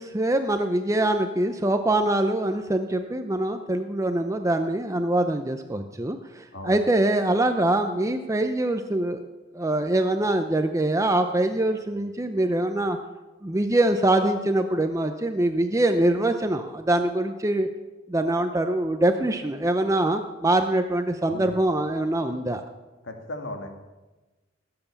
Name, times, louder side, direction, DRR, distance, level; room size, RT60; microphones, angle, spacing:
voice 1, 0.0-9.2 9.5-13.0 13.4-17.7 18.1-22.6, right 1 dB, 15° right, 7 dB, 0.6 m, -24 dB
voice 2, 23.0-23.7, left 1 dB, 90° left, 4 dB, 1.9 m, -36 dB
19.5 x 7.9 x 7.0 m, 1.2 s
head